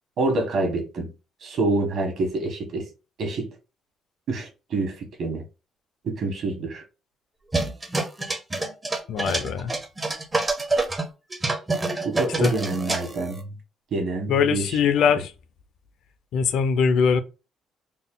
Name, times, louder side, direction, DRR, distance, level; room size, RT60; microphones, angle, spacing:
voice 1, 0.2-1.1 1.4-2.9 3.2-3.5 4.3-5.4 6.0-6.8 12.0-13.5 13.9-14.8, right 2 dB, 50° right, 1.4 m, -27 dB
sound 1, 7.5-11.0 11.3-13.4, right 2 dB, 15° right, 0.5 m, -27 dB
voice 2, 9.1-9.7 12.4-12.5 14.3-15.3 16.3-17.2, left 6 dB, 65° left, 0.4 m, -21 dB
3.8 x 2.2 x 3.7 m
cardioid pair, 175°, 0 cm